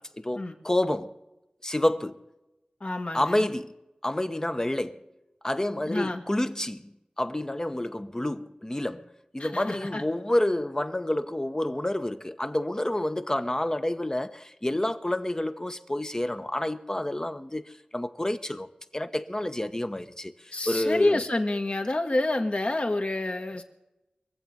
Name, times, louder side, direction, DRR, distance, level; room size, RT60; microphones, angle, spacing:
voice 1, 0.2-1.1 1.6-2.2 3.1-3.7 4.0-5.0 5.4-9.1 9.3-17.6 17.9-21.2, left 1 dB, 25° left, 1.0 m, -29 dB
voice 2, 2.8-3.5 5.9-6.2 9.4-10.0 20.5-23.6, left 2 dB, 50° left, 1.8 m, -28 dB
23.5 x 7.9 x 5.4 m
cardioid pair, 40°, 3 cm